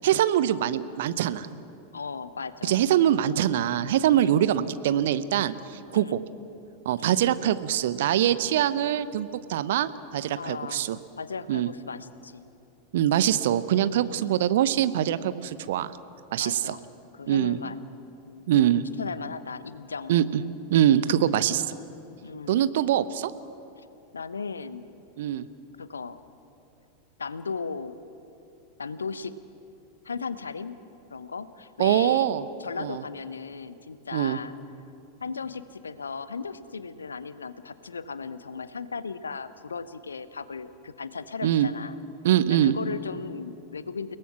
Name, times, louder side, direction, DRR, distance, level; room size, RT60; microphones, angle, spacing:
voice 1, 0.0-1.5 2.6-6.2 6.8-11.0 11.5-11.7 12.9-15.9 16.3-16.8 17.3-17.6 18.5-18.8 20.1-20.4 20.7-21.8 22.5-23.3 25.2-25.5 31.8-32.4 32.8-33.0 34.1-34.4 41.4-41.7 42.2-42.8, right 11 dB, 55° right, 14 dB, 0.9 m, -23 dB
voice 2, 1.9-2.7 4.1-4.4 5.9-6.2 7.0-7.9 10.4-10.9 11.2-12.4 14.0-14.6 16.4-16.8 17.1-17.8 18.3-18.5 19.0-20.2 22.2-22.7 23.8-23.9 24.1-24.9 25.8-26.2 27.2-28.0 28.8-29.4 30.0-30.8 31.1-32.3 32.6-34.5 35.2-42.0 42.5-44.2, left 5 dB, 75° left, 14 dB, 0.9 m, -36 dB
30.0 x 18.5 x 6.1 m, 2.7 s
figure-of-eight pair, 90°, 0 cm